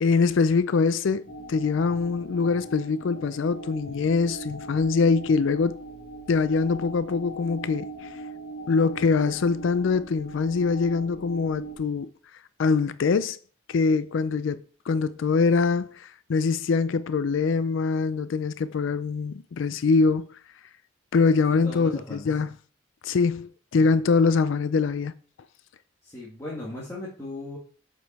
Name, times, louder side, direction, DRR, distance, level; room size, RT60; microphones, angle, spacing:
voice 1, 0.0-5.8 6.3-8.1 8.7-12.1 12.6-13.4 13.7-14.6 14.9-20.3 21.1-22.5 23.0-25.1, left 4 dB, 70° left, 0.4 m, -23 dB
sound 1, 1.2-11.8, right 2 dB, 90° left, 2.0 m, -40 dB
voice 2, 21.6-22.3 26.0-27.6, left 2 dB, 15° left, 1.5 m, -37 dB
7.8 x 5.3 x 4.1 m
head